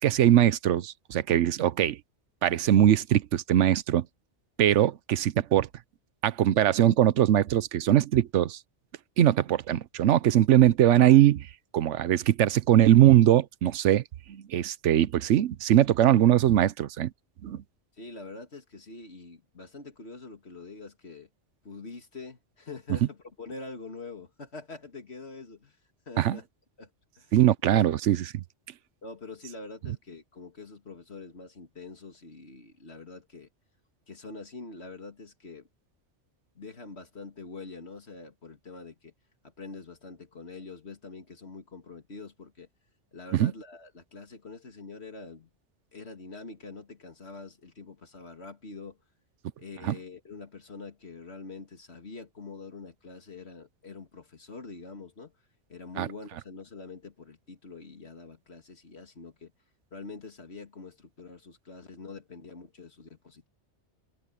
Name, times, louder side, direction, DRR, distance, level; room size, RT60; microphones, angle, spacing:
voice 1, 0.0-2.0 2.4-4.1 4.6-5.7 6.2-8.6 9.2-11.5 11.7-14.0 14.3-17.1 17.4-17.6 26.2-26.4 27.3-28.4 43.3-43.5 49.8-50.0 56.0-56.1, right 12 dB, 85° right, 1.0 m, -21 dB
voice 2, 18.0-21.3 21.6-25.8 26.1-26.5 26.8-26.9 27.2-27.3 27.7-27.8 29.0-33.5 34.1-35.7 36.5-39.1 39.4-42.7 43.1-45.5 45.9-49.0 49.6-55.3 55.7-59.5 59.9-63.5, left 3 dB, 65° left, 2.7 m, -45 dB
omnidirectional pair, 1.2 m